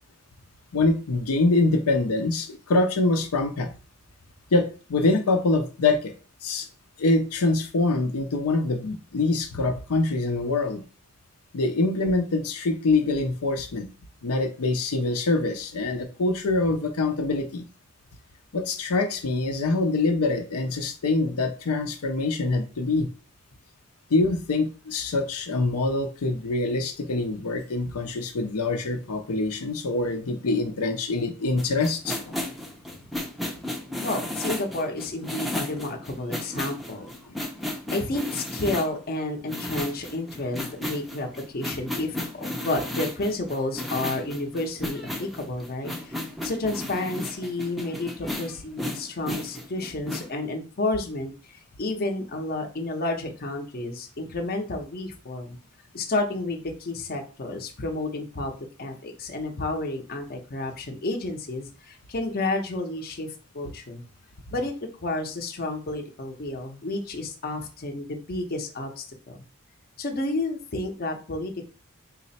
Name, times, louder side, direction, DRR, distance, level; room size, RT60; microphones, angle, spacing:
voice 1, 0.7-3.7 4.5-6.1 6.4-6.7 7.0-10.8 11.5-13.9 14.2-17.6 18.5-23.1 24.1-32.2 37.3-37.4, left 2 dB, 90° left, 4 dB, 0.6 m, -24 dB
sound 1, 31.6-38.9 39.5-50.3, left 1 dB, ahead, 0.5 m, -34 dB
voice 2, 34.0-37.1 37.9-55.6 55.9-64.0 64.5-64.7 65.0-69.4 70.0-71.6, left 2 dB, 45° left, 3 dB, 0.7 m, -31 dB
4.0 x 2.0 x 4.1 m, 0.36 s
head